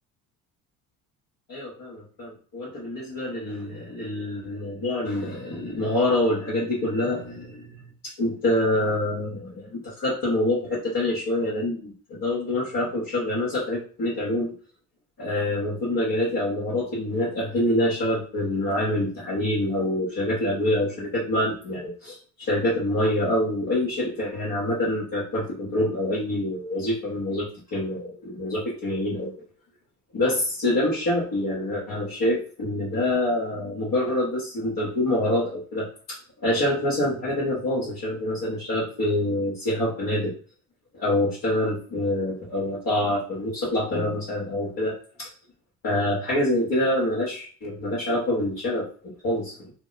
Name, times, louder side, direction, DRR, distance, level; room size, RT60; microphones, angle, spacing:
voice 1, 1.5-14.5 15.2-29.3 30.1-40.3 40.9-45.3 45.8-49.7, left 1 dB, 50° left, -7 dB, 1.4 m, -26 dB
2.8 x 2.0 x 4.0 m, 0.40 s
hypercardioid pair, 65°, 41 cm